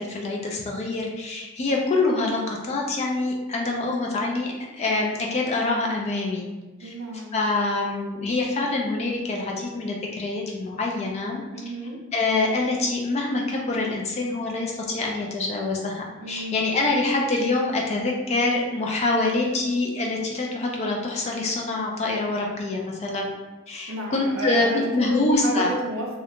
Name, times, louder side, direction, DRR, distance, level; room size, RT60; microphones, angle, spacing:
voice 1, 0.0-6.5 6.8-6.9 7.3-11.4 12.1-23.3 23.7-25.7, left 2 dB, 30° left, -1 dB, 0.3 m, -25 dB
voice 2, 6.8-7.4 11.5-12.0 16.1-16.6 23.9-26.1, right 1 dB, 65° right, -1 dB, 0.6 m, -31 dB
2.4 x 2.2 x 2.8 m, 1.1 s
head